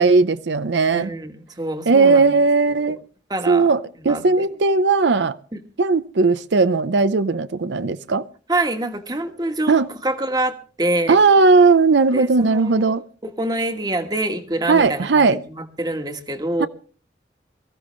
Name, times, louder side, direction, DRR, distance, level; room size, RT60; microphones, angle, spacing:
voice 1, 0.0-1.1 1.9-3.0 3.5-5.4 5.8-8.2 9.7-9.9 11.1-13.0 14.7-15.4 16.6-16.7, right 4 dB, 90° right, 0.6 m, -17 dB
voice 2, 0.9-2.3 2.9-3.0 3.3-3.7 4.1-4.5 5.5-5.6 8.5-11.2 12.1-12.9 13.2-16.7, right 1 dB, 20° right, 1.4 m, -26 dB
23.0 x 14.5 x 3.2 m
head